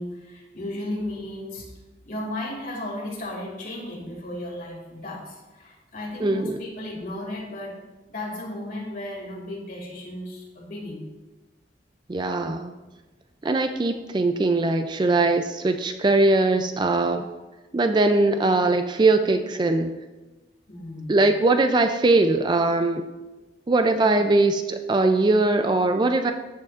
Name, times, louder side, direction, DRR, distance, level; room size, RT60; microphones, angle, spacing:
voice 1, 0.0-1.7 2.1-7.7 8.1-11.0 20.7-21.3 24.0-24.2, left 1 dB, 50° left, -3 dB, 2.4 m, -35 dB
voice 2, 6.2-6.6 12.1-12.7 13.4-17.3 17.7-20.0 21.1-23.0 23.7-26.3, right 2 dB, 25° right, 7 dB, 0.3 m, -21 dB
13.5 x 6.5 x 2.5 m, 1.2 s
head